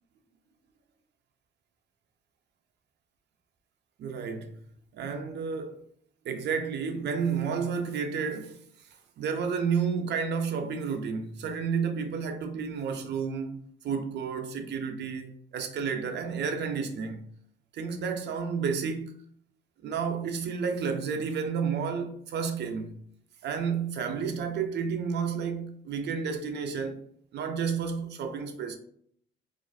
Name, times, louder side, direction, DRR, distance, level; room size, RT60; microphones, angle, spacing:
voice 1, 4.0-4.6 4.9-5.8 6.2-8.6 9.2-17.3 17.7-19.1 19.8-23.0 23.4-27.1 27.3-28.8, right 6 dB, 60° right, 0.4 m, -31 dB
2.3 x 2.3 x 2.3 m
cardioid pair, 90°, 20 cm